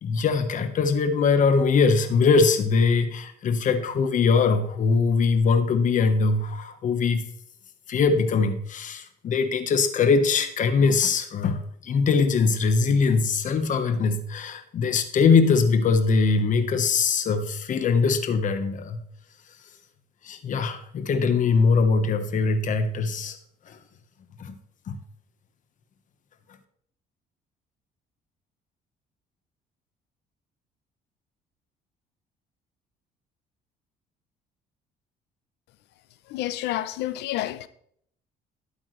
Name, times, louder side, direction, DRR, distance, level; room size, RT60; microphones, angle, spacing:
voice 1, 0.0-7.2 7.9-19.0 20.2-23.4 23.7-23.8 24.4-24.6 24.9-25.0, left 4 dB, 50° left, 1.3 m, -22 dB
voice 2, 36.3-37.7, left 14 dB, 85° left, 0.8 m, -29 dB
12.5 x 8.5 x 3.3 m
cardioid pair, 110°, 17 cm